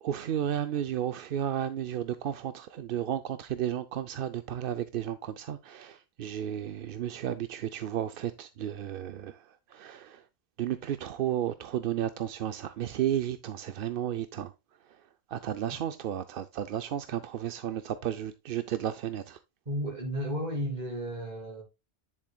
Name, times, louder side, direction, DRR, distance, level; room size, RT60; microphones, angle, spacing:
voice 1, 0.0-10.3 10.6-14.5 14.8-19.4, right 11 dB, 60° right, 0.7 m, -33 dB
voice 2, 19.6-21.6, equal, 40° right, 3.4 m, -33 dB
10.0 x 7.3 x 2.2 m
omnidirectional pair, 1.2 m